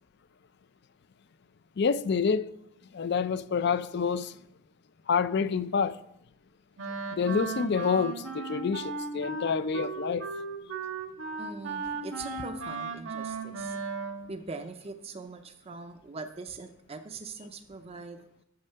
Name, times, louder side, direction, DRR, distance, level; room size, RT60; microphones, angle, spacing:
voice 1, 1.8-2.5 2.9-4.3 5.1-6.0 7.1-10.3, left 5 dB, 55° left, 0.4 m, -27 dB
Wind instrument woodwind instrument, 6.8-14.3, right 4 dB, 85° right, 1.6 m, -36 dB
voice 2, 11.4-13.8 14.3-18.2, right 3 dB, 30° right, 0.5 m, -42 dB
8.6 x 7.3 x 5.7 m
head